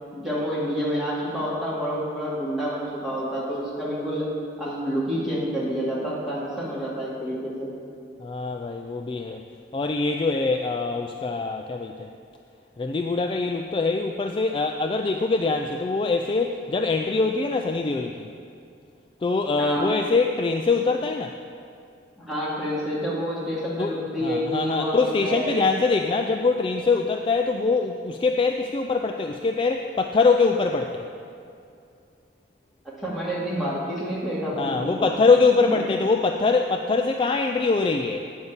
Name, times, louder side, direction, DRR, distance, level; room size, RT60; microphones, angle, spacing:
voice 1, 0.1-4.3 4.6-7.7 19.6-19.9 22.2-25.6 32.8-35.1 35.7-35.8, equal, ahead, -8 dB, 2.4 m, -28 dB
voice 2, 8.2-9.4 9.7-12.1 12.8-18.3 19.2-21.4 23.8-23.9 24.2-31.0 34.6-38.3, left 4 dB, 25° left, 4 dB, 0.3 m, -23 dB
9.6 x 5.3 x 7.2 m, 2.5 s
head